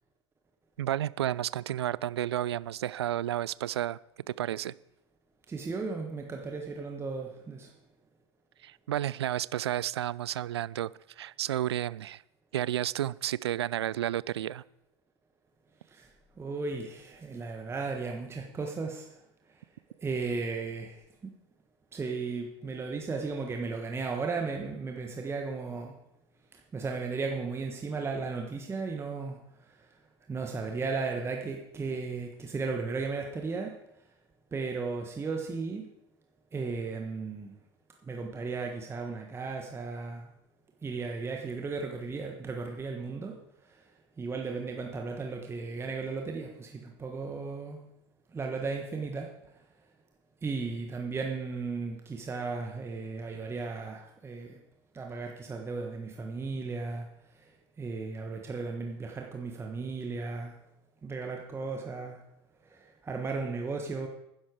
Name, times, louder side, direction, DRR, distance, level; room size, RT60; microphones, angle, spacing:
voice 1, 0.8-4.0 4.4-4.7 8.6-10.9 11.2-12.2 12.5-14.6, right 12 dB, 70° right, 21 dB, 0.4 m, -31 dB
voice 2, 5.5-7.7 15.9-16.1 16.4-19.2 20.0-21.0 21.9-25.9 26.5-29.4 30.3-33.8 34.5-35.9 36.5-37.5 38.0-40.3 40.8-43.4 43.7-43.8 44.2-47.8 48.3-49.3 50.4-54.6 54.9-57.1 57.4-57.5 57.8-60.5 61.0-62.2 62.7-64.1, right 4 dB, 15° right, 2 dB, 1.4 m, -35 dB
12.0 x 10.5 x 4.9 m, 0.82 s
figure-of-eight pair, 80°, 14 cm